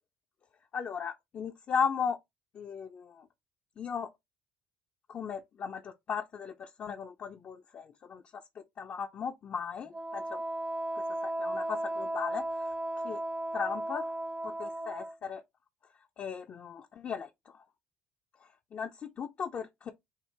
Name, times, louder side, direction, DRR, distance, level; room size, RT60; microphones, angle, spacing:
voice 1, 0.7-2.2 2.5-3.2 3.8-4.1 5.1-8.2 8.8-10.4 11.2-12.4 13.0-13.2 13.5-14.1 14.4-15.4 16.2-17.3 18.7-19.9, left 6 dB, 45° left, 0.6 m, -36 dB
Wind instrument woodwind instrument, 9.9-15.2, right 1 dB, 20° right, 0.7 m, -35 dB
4.6 x 2.4 x 3.4 m
supercardioid pair, 75°, 4 cm